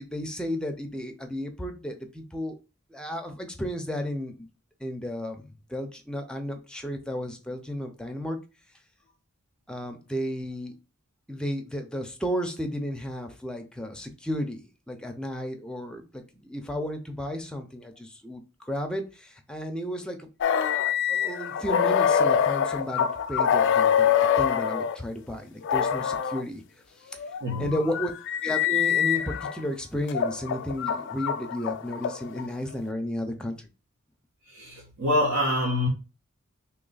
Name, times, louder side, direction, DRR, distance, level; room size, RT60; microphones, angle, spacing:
voice 1, 0.0-2.6 2.9-4.5 4.8-8.4 9.7-10.7 11.3-20.3 20.8-26.6 27.0-27.2 27.6-28.1 28.4-33.7, equal, 5° left, 0.5 m, -33 dB
sound 1, 20.4-25.0 25.6-26.4 27.2-29.5 30.1-32.5, left 8 dB, 55° left, 0.3 m, -25 dB
voice 2, 27.4-27.7 34.4-35.9, left 1 dB, 70° right, 1.2 m, -26 dB
3.2 x 3.0 x 3.9 m
head